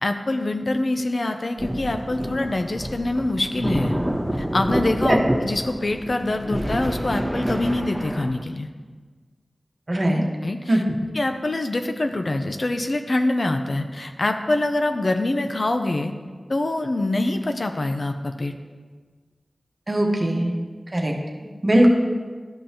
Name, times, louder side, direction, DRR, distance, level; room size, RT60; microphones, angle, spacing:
voice 1, 0.0-4.0 4.4-8.7 10.4-10.8 11.1-16.1 16.5-18.5, left 2 dB, 55° left, 6 dB, 0.6 m, -25 dB
sound 1, 1.6-8.3, equal, ahead, 1.5 m, -28 dB
voice 2, 9.9-10.2 10.7-10.8 19.9-20.5 20.9-21.1 21.6-21.9, right 1 dB, 40° right, 0 dB, 1.2 m, -19 dB
12.5 x 5.3 x 2.9 m, 1.5 s
wide cardioid pair, 55°, 0 cm